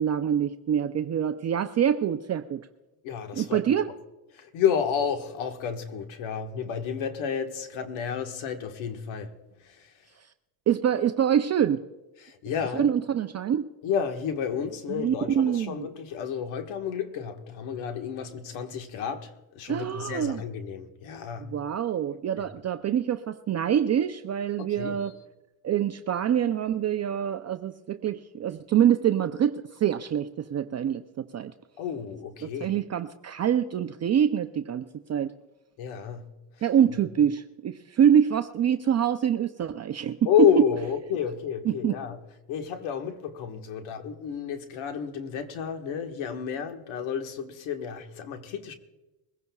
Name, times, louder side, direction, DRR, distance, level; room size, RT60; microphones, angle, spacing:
voice 1, 0.0-2.6 3.3-3.9 10.7-11.8 12.7-13.7 14.9-15.9 19.7-20.4 21.4-25.1 25.6-31.5 32.4-35.3 36.6-40.6 41.6-42.0, right 9 dB, 35° right, 0.5 m, -25 dB
voice 2, 3.0-3.6 4.3-9.3 9.6-9.9 12.2-12.9 13.8-21.5 24.6-25.0 31.8-32.7 35.8-36.3 40.2-42.2 42.5-48.7, left 8 dB, 80° left, 1.7 m, -30 dB
22.0 x 16.0 x 2.4 m
cardioid pair, 100°, 46 cm